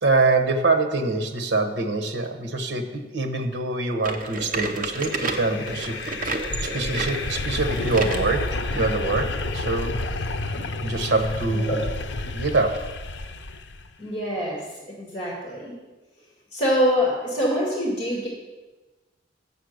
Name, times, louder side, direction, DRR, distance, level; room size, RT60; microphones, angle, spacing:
voice 1, 0.0-8.5 8.7-10.0 10.8-11.8 12.3-12.8, right 3 dB, 70° right, 6 dB, 1.1 m, -25 dB
sound 1, 4.0-8.3 8.8-8.9 9.6-9.7 10.6-10.7, right 3 dB, 45° right, 0.8 m, -30 dB
sound 2, 4.7-13.9, left 2 dB, 70° left, 0.6 m, -30 dB
voice 2, 14.0-15.7 16.5-18.3, equal, 30° left, -3 dB, 2.0 m, -25 dB
7.7 x 7.0 x 6.5 m, 1.2 s
head